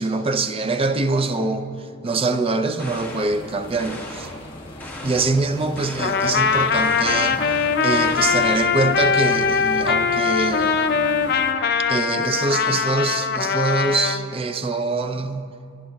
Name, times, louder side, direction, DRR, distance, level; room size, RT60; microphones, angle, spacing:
voice 1, 0.0-1.7 2.0-4.3 5.0-10.8 11.9-15.5, right 3 dB, 30° right, 0.5 m, -24 dB
sound 1, 2.8-3.4 3.8-4.4 4.8-5.4 5.8-6.3 6.8-7.4 7.9-8.6, left 1 dB, 10° left, 1.7 m, -37 dB
sound 2, 2.9-11.5, left 1 dB, 25° left, 1.4 m, -40 dB
Trumpet, 6.0-14.2, left 6 dB, 55° left, 0.6 m, -21 dB
26.0 x 11.0 x 2.3 m
head